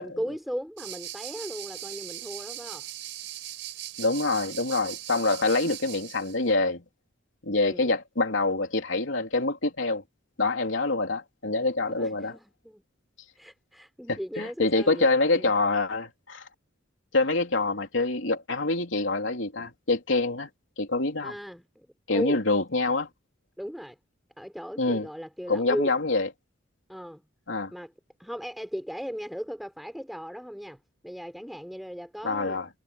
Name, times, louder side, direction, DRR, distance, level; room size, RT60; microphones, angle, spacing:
voice 1, 0.0-2.8 7.5-7.9 11.9-12.8 13.3-15.5 21.2-22.4 23.6-24.0 24.4-26.0 26.9-27.2 27.7-27.9 28.2-32.6, equal, ahead, 4.7 m, -37 dB
sound 1, 0.8-6.4, right 13 dB, 75° right, 4.6 m, -39 dB
voice 2, 4.0-6.8 7.4-10.0 10.4-12.3 14.1-16.5 17.1-20.5 20.8-21.3 22.1-23.1 24.8-25.1 25.5-26.3 27.5-27.7 32.2-32.7, left 3 dB, 75° left, 3.4 m, -26 dB
head